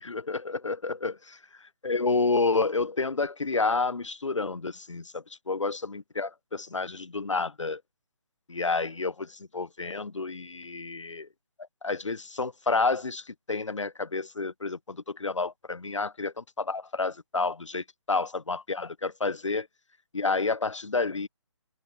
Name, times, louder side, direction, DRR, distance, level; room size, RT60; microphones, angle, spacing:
voice 1, 0.0-1.4 1.8-7.8 8.5-11.3 11.8-19.7 20.1-21.3, left 3 dB, 90° left, 0.8 m, -30 dB
figure-of-eight pair, 145°, 15 cm